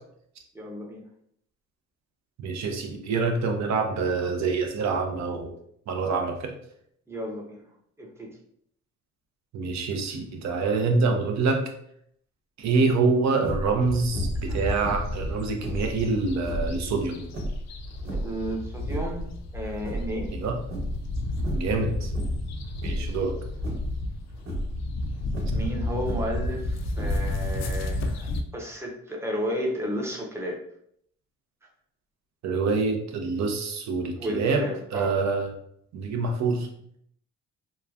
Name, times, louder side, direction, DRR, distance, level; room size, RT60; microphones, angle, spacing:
voice 1, 0.5-1.0 7.1-7.6 8.0-8.4 14.5-14.6 18.1-20.3 25.5-30.6 34.1-35.2, equal, 10° right, -1 dB, 0.6 m, -33 dB
voice 2, 2.4-5.5 5.9-6.5 9.5-11.6 12.6-17.2 20.3-20.6 21.5-22.1 22.8-23.4 32.4-35.5 35.9-36.7, right 4 dB, 65° right, 3 dB, 0.6 m, -26 dB
sound 1, 13.4-13.8 14.1-14.5 14.8-16.0 16.4-16.7 17.3-18.4 18.8-19.3 19.7-20.4 20.7-21.1 21.4-21.8 22.1-22.5 22.8-23.2 23.6-24.0 24.4-24.7 25.3-26.4 26.9-27.5, equal, 45° right, 1.1 m, -33 dB
sound 2, 13.9-28.4, left 1 dB, 60° left, 0.4 m, -32 dB
3.0 x 2.2 x 2.4 m, 0.70 s
cardioid pair, 90°, 30 cm